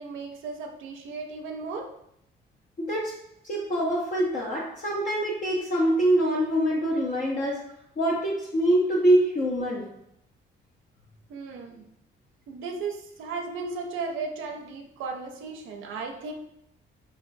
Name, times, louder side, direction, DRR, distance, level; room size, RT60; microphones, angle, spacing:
voice 1, 0.0-1.9 11.3-11.8 12.5-16.3, right 4 dB, 80° right, 2 dB, 0.4 m, -35 dB
voice 2, 2.8-3.1 3.4-7.6 8.0-9.9, right 1 dB, 40° left, -4 dB, 0.6 m, -24 dB
2.9 x 2.4 x 2.5 m, 0.76 s
cardioid pair, 90°, 20 cm